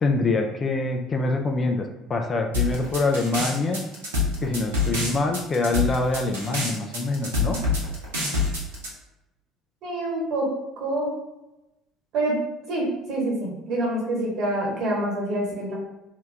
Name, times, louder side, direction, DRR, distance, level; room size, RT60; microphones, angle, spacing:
voice 1, 0.0-3.8 4.4-7.6, left 3 dB, 30° left, 4 dB, 0.4 m, -25 dB
sound 1, 2.5-8.9, left 3 dB, 75° right, 0.6 m, -25 dB
voice 2, 9.8-10.5 10.8-11.2 12.1-12.4 12.7-15.7, right 1 dB, 55° right, -3 dB, 1.1 m, -26 dB
2.8 x 2.2 x 3.3 m, 0.96 s
figure-of-eight pair, 60°, 0 cm